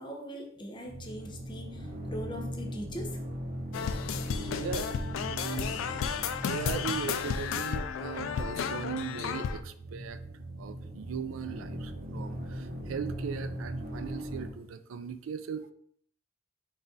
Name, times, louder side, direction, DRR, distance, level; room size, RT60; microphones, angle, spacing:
voice 1, 0.0-3.2, equal, 25° left, 2 dB, 0.6 m, -41 dB
sound 1, 0.9-14.5, equal, 50° right, 0.7 m, -40 dB
sound 2, 3.7-9.6, left 6 dB, 85° left, 0.3 m, -33 dB
voice 2, 4.5-4.9 5.3-5.7 6.5-10.2 10.6-15.7, right 7 dB, 85° right, 11 dB, 0.3 m, -38 dB
4.0 x 2.4 x 3.9 m, 0.64 s
head